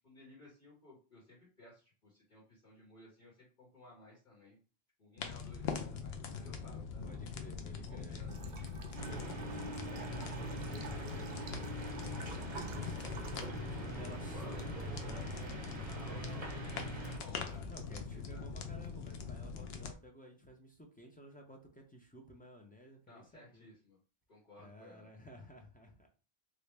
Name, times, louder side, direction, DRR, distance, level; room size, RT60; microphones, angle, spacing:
voice 1, 0.0-4.6 5.0-7.1 7.9-8.3 13.3-13.5 14.3-14.6 15.8-18.5 23.1-24.0 24.3-25.1, left 2 dB, 50° left, -6 dB, 1.6 m, -57 dB
sound 1, 5.2-19.9, left 5 dB, 70° left, 0.8 m, -43 dB
voice 2, 7.0-8.2 9.0-12.0 12.7-16.5 17.7-23.7 24.6-26.1, equal, 10° left, 1 dB, 0.4 m, -54 dB
Bathtub (filling or washing) / Trickle dribble, 8.3-19.2, right 5 dB, 60° right, 0.5 m, -53 dB
sound 2, 8.9-17.2, right 2 dB, 35° right, 0.9 m, -44 dB
3.1 x 2.5 x 3.2 m, 0.35 s
omnidirectional pair, 1.1 m